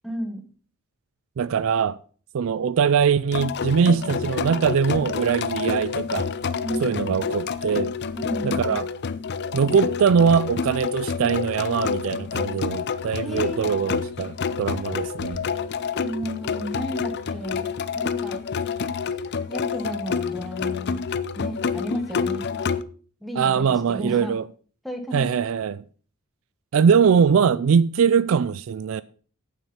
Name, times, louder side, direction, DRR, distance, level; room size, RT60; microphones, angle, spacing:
voice 1, 0.0-0.4 6.6-7.1 8.1-8.8 13.2-13.9 16.0-17.7 17.9-18.4 19.5-21.0 21.3-22.4 23.2-24.3 24.8-25.4, equal, ahead, 1.6 m, -33 dB
voice 2, 1.4-2.0 2.3-6.3 6.8-7.9 8.4-8.9 9.5-15.4 23.4-24.4 25.1-25.8 26.7-29.0, right 6 dB, 60° right, 0.3 m, -22 dB
sound 1, 3.3-22.8, left 6 dB, 50° left, 0.5 m, -28 dB
8.8 x 7.3 x 5.6 m
head